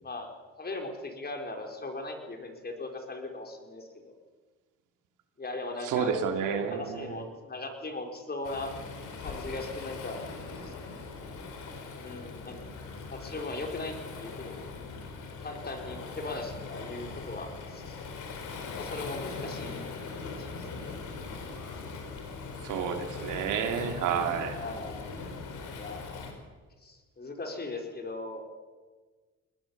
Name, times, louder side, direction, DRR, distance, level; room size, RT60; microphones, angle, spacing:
voice 1, 0.6-4.1 5.4-6.1 6.4-8.7 9.2-10.2 10.6-10.7 12.0-12.6 13.1-14.7 15.4-18.1 18.8-19.9 20.4-20.6 24.5-25.1 25.7-26.2 26.8-28.4, left 2 dB, 30° left, 3 dB, 4.5 m, -39 dB
voice 2, 5.8-7.2 22.6-24.6, right 7 dB, 85° right, 5 dB, 2.7 m, -30 dB
Waves surf, 8.4-26.3, left 4 dB, 80° left, 4.5 m, -40 dB
21.5 x 19.5 x 7.2 m, 1.4 s
cardioid pair, 90°, 30 cm